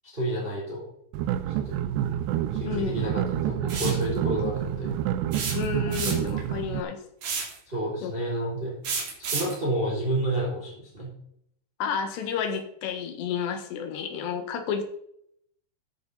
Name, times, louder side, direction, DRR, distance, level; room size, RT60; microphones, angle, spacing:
voice 1, 0.1-0.8 1.6-1.7 2.5-5.0 7.7-8.7 9.2-11.1, right 1 dB, 10° right, -4 dB, 3.6 m, -30 dB
sound 1, 1.1-6.8, right 11 dB, 75° right, 2.6 m, -28 dB
voice 2, 2.6-3.0 5.5-7.0 8.0-8.1 11.8-14.8, left 7 dB, 65° left, 6 dB, 3.4 m, -31 dB
sound 2, 3.7-4.0 5.3-6.4 7.2-7.6 8.8-9.6, right 5 dB, 50° right, 4.4 m, -30 dB
14.0 x 9.1 x 4.2 m, 0.71 s
omnidirectional pair, 5.6 m